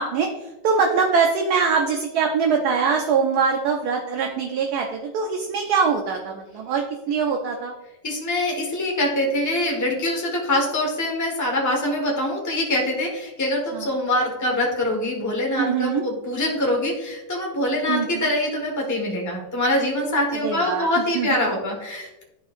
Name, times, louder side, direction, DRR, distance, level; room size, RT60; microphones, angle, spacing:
voice 1, 0.0-7.7 13.7-13.8 15.6-16.0 17.9-18.3 20.4-20.9 21.1-21.3, right 5 dB, 65° right, 3 dB, 1.1 m, -23 dB
voice 2, 8.0-22.2, left 1 dB, 10° left, -1 dB, 1.2 m, -24 dB
12.0 x 4.4 x 2.5 m, 1.0 s
omnidirectional pair, 2.0 m